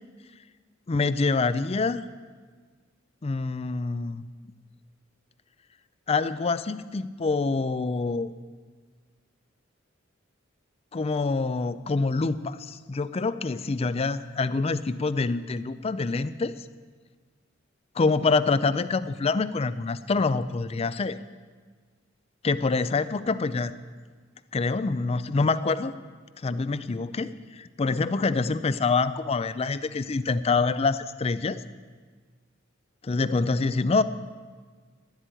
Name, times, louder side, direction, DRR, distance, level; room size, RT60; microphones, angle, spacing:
voice 1, 0.9-2.1 3.2-4.3 6.1-8.3 10.9-16.6 18.0-21.2 22.4-23.7 24.5-26.0 26.4-31.6 33.0-34.0, left 4 dB, 30° left, 14 dB, 0.4 m, -26 dB
11.5 x 8.1 x 9.0 m, 1.5 s
head